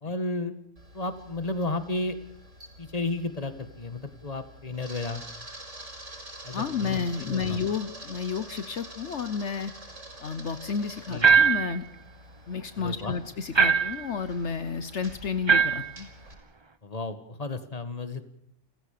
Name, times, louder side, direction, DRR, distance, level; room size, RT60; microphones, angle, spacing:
voice 1, 0.0-0.5 0.9-2.2 2.8-5.2 6.4-7.6 11.1-11.3 12.8-13.1 16.8-18.2, left 2 dB, 30° left, 10 dB, 1.9 m, -33 dB
Camera, 0.8-16.3, right 1 dB, 70° right, 5.6 m, -46 dB
voice 2, 6.5-9.7 10.2-11.8 12.5-16.1, left 6 dB, 65° left, 11 dB, 1.3 m, -31 dB
sound 1, 11.2-11.8 13.5-14.1 15.5-15.9, right 6 dB, 25° right, 1.0 m, -20 dB
30.0 x 16.0 x 6.8 m, 0.81 s
omnidirectional pair, 1.3 m